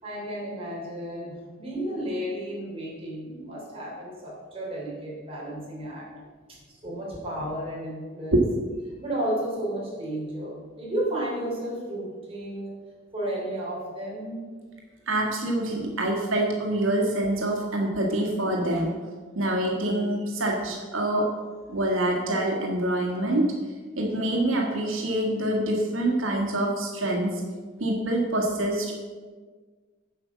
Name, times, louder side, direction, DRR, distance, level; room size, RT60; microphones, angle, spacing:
voice 1, 0.0-6.1 6.5-8.4 9.0-12.8 13.1-14.4, right 1 dB, 30° right, -5 dB, 3.2 m, -33 dB
voice 2, 15.1-18.9 19.3-21.3 21.7-23.5 24.0-27.4 27.8-29.1, right 1 dB, 85° right, -1 dB, 1.6 m, -25 dB
7.9 x 5.7 x 7.3 m, 1.5 s
head